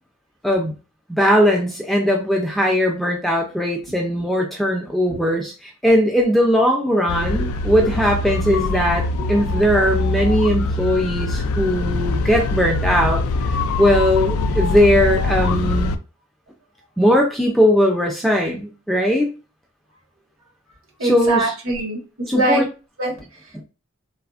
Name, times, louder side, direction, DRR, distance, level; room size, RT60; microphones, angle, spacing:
voice 1, 1.1-5.5 5.8-13.2 13.5-15.9 17.0-19.3 21.1-21.4 22.3-22.6 23.5-23.6, equal, ahead, 0 dB, 0.4 m, -19 dB
sound 1, 7.1-16.0, left 2 dB, 85° left, 0.3 m, -23 dB
voice 2, 7.2-7.9 9.2-9.3 21.0-22.6 23.0-23.5, right 2 dB, 75° right, -3 dB, 1.4 m, -24 dB
3.2 x 2.0 x 2.4 m, 0.33 s
head